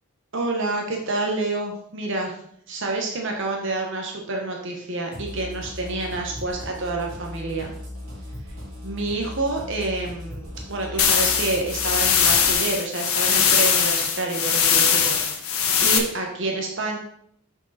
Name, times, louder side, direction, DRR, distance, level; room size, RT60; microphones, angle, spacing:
voice 1, 0.3-2.3 2.7-7.7 8.8-17.0, right 2 dB, 60° right, 1 dB, 1.3 m, -28 dB
sound 1, 5.1-12.5, left 1 dB, 75° right, 3.3 m, -37 dB
sound 2, 11.0-16.0, left 7 dB, 85° left, 1.2 m, -20 dB
7.0 x 6.5 x 4.2 m, 0.67 s
head